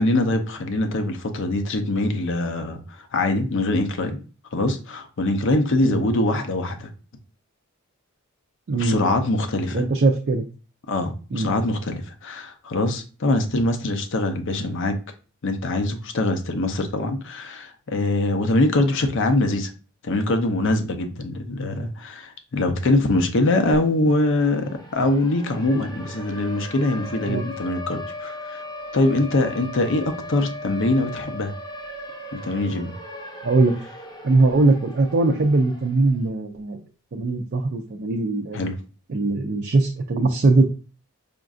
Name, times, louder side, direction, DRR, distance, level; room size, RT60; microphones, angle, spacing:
voice 1, 0.0-4.2 4.5-6.9 8.7-9.8 10.9-15.0 15.4-19.7 20.0-28.6 28.9-31.5 32.3-32.9 38.5-38.7, left 2 dB, 60° left, 0.6 m, -23 dB
voice 2, 8.7-9.0 9.7-10.5 11.3-11.5 27.2-27.4 33.4-33.8 34.2-36.8 37.1-38.6 39.1-40.7, right 3 dB, 50° right, 0.4 m, -20 dB
Siren, 24.1-36.2, left 1 dB, 20° left, 0.8 m, -38 dB
5.1 x 2.5 x 2.4 m
head